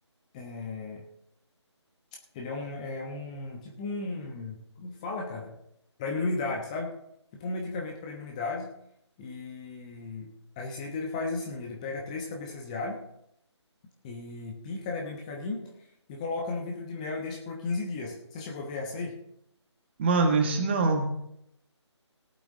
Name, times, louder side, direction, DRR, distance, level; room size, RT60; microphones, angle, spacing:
voice 1, 0.3-1.1 2.3-5.5 6.0-6.9 7.3-8.7 9.2-10.3 10.6-13.0 14.0-15.6 16.1-19.2, left 3 dB, 15° left, 0 dB, 1.0 m, -35 dB
voice 2, 20.0-21.1, right 3 dB, 25° right, 4 dB, 1.3 m, -23 dB
18.0 x 8.4 x 3.7 m, 0.77 s
figure-of-eight pair, 155°, 15 cm